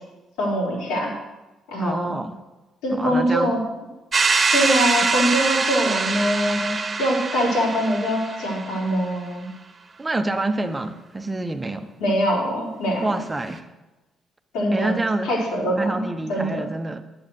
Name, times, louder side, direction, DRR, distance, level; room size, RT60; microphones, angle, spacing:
voice 1, 0.4-1.2 1.7-2.2 2.8-3.6 4.5-6.7 7.0-9.5 12.0-13.1 14.5-16.0 16.3-16.7, equal, 80° left, -5 dB, 4.4 m, -23 dB
voice 2, 1.8-2.4 2.9-3.5 10.0-11.9 13.0-13.7 14.7-15.3 15.8-17.0, right 2 dB, 20° right, 7 dB, 1.1 m, -27 dB
sound 1, 4.1-8.9, right 4 dB, 40° right, 1.3 m, -23 dB
10.5 x 8.7 x 6.6 m, 1.1 s
hypercardioid pair, 50°, 0 cm